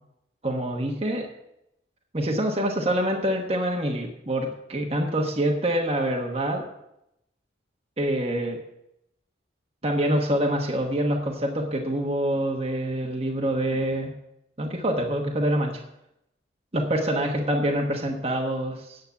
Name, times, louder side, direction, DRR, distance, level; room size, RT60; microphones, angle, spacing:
voice 1, 0.4-1.3 2.1-6.6 8.0-8.6 9.8-14.1 14.6-15.8 16.7-19.0, right 1 dB, 30° right, 1 dB, 1.2 m, -26 dB
9.5 x 7.7 x 7.0 m, 0.83 s
head